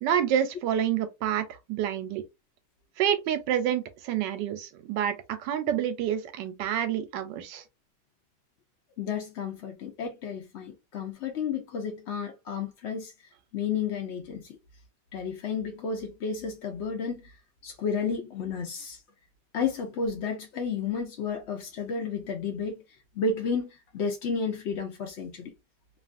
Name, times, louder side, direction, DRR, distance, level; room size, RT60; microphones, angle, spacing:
voice 1, 0.0-2.2 3.0-7.6, right 10 dB, 85° right, 1.3 m, -28 dB
voice 2, 9.0-13.1 13.5-14.6 15.1-17.3 17.6-19.0 19.5-22.8 23.1-25.5, left 5 dB, 70° left, 0.6 m, -32 dB
2.9 x 2.4 x 2.4 m
omnidirectional pair, 1.9 m